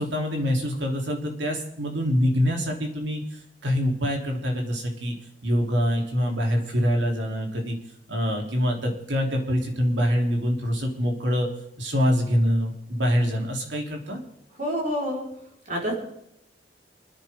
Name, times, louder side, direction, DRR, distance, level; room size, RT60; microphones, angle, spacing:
voice 1, 0.0-3.2 3.6-5.1 5.4-7.8 8.1-11.5 11.8-14.2, equal, 80° right, 0 dB, 3.6 m, -25 dB
voice 2, 14.6-15.2 15.7-15.9, equal, 45° right, -2 dB, 4.8 m, -27 dB
30.0 x 10.0 x 3.8 m, 0.77 s
head